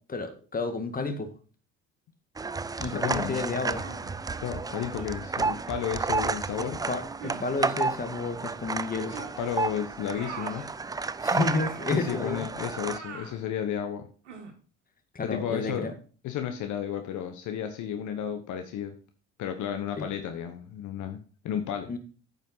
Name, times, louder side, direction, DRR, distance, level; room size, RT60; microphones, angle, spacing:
voice 1, 0.1-1.3 2.8-3.9 6.6-9.2 11.2-12.5 15.2-15.9 20.0-20.1 21.9-22.0, left 3 dB, 25° left, 7 dB, 1.8 m, -31 dB
sound 1, 2.4-13.0, right 4 dB, 10° right, 0.4 m, -32 dB
voice 2, 2.8-3.6 4.4-6.8 9.1-10.6 11.9-14.1 15.2-15.9 16.2-19.0 19.4-21.9, left 9 dB, 55° left, 7 dB, 1.2 m, -33 dB
sound 2, 3.8-4.2 4.9-5.1 6.1-6.4 7.2-7.5 9.1-9.4 10.1-10.7 11.4-11.9 12.8-13.4 14.3-14.6, right 6 dB, 90° right, 1.6 m, -42 dB
9.0 x 5.6 x 5.6 m, 0.39 s
hypercardioid pair, 65°, 35 cm